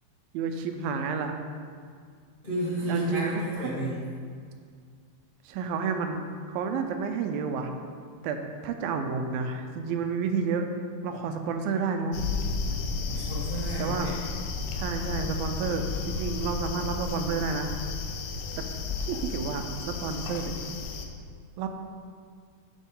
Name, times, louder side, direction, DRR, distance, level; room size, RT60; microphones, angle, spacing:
voice 1, 0.3-1.4 2.9-3.4 5.5-7.7 8.2-10.7 11.0-12.2 13.8-14.1 14.7-17.7 18.6-18.7 19.0-20.5 21.6-21.7, right 5 dB, 85° right, 6 dB, 2.4 m, -30 dB
voice 2, 2.4-4.1 13.1-14.2, right 1 dB, 35° left, -9 dB, 0.8 m, -31 dB
sound 1, 12.1-21.1, left 4 dB, 75° left, 2.3 m, -33 dB
9.5 x 7.1 x 3.8 m, 2.1 s
omnidirectional pair, 4.2 m